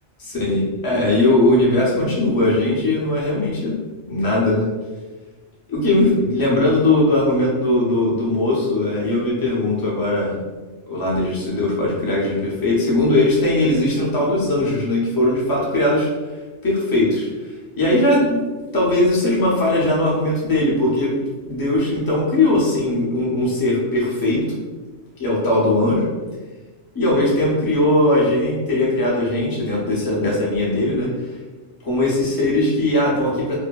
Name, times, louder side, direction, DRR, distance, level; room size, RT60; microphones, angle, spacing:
voice 1, 0.2-3.7 4.0-4.6 5.7-10.4 10.9-16.1 16.6-17.3 17.8-18.4 18.7-21.2 21.5-24.4 25.2-26.0 26.9-31.3 31.8-33.6, left 1 dB, 25° left, -5 dB, 0.5 m, -19 dB
2.6 x 2.6 x 2.2 m, 1.3 s
omnidirectional pair, 1.2 m